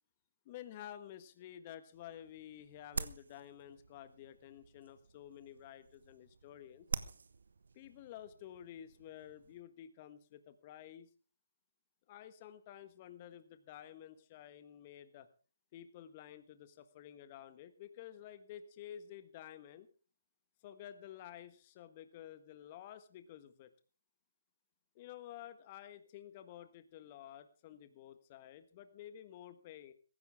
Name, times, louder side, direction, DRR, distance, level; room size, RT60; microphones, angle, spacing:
voice 1, 0.4-6.9 7.7-11.1 12.1-15.3 15.7-19.9 20.6-23.7 24.9-29.9, left 11 dB, 30° left, 11 dB, 1.5 m, -52 dB
sound 1, 1.9-9.6, right 4 dB, 65° right, 1.0 m, -47 dB
17.0 x 15.5 x 3.6 m, 0.37 s
figure-of-eight pair, 145°, 0 cm